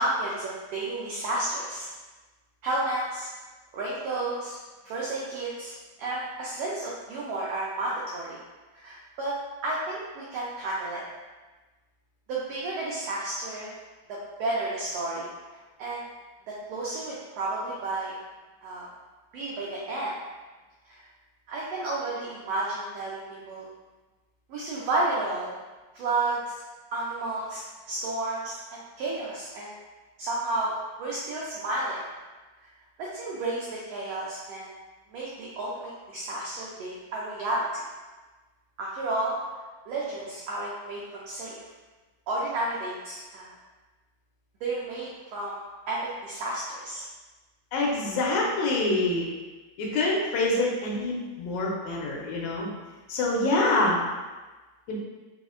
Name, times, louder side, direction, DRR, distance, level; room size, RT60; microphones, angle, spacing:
voice 1, 0.0-1.9 2.6-3.3 3.7-4.6 4.8-5.7 6.0-8.4 8.8-9.3 9.6-11.0 12.3-13.7 14.1-15.3 15.8-16.1 16.5-18.1 18.6-18.9 19.3-20.1 20.9-21.1 21.5-23.6 24.5-25.6 25.9-26.6 26.9-29.7 30.2-30.7 31.0-32.0 33.0-34.7 35.1-37.8 38.8-39.4 39.9-41.5 42.3-43.5 44.6-45.6 45.9-47.1, right 2 dB, 90° right, -5 dB, 1.4 m, -31 dB
voice 2, 47.7-49.3 49.8-52.7 53.1-53.9 54.9-55.0, left 2 dB, 80° left, -2 dB, 1.9 m, -26 dB
4.8 x 2.0 x 2.4 m, 1.2 s
omnidirectional pair, 3.3 m